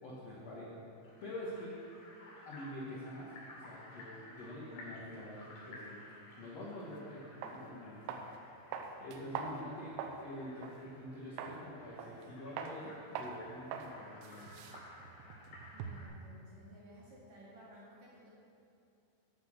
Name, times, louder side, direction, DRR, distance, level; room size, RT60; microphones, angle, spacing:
voice 1, 0.0-0.8 1.2-1.7 2.4-5.9 6.4-8.1 9.0-14.5, left 1 dB, 80° left, -5 dB, 1.4 m, -46 dB
sound 1, 1.0-16.1, left 2 dB, 65° left, 4.2 m, -56 dB
sound 2, 6.9-7.0 7.4-7.6 8.1-8.4 8.7-10.2 10.6-10.8 11.4-11.6 12.0-12.3 12.6-12.8 13.2-13.4 13.7-13.9 14.2-16.1, right 6 dB, 85° right, 2.8 m, -43 dB
voice 2, 15.7-18.3, right 1 dB, 50° right, -7 dB, 2.7 m, -56 dB
12.0 x 6.2 x 6.4 m, 2.7 s
omnidirectional pair, 5.2 m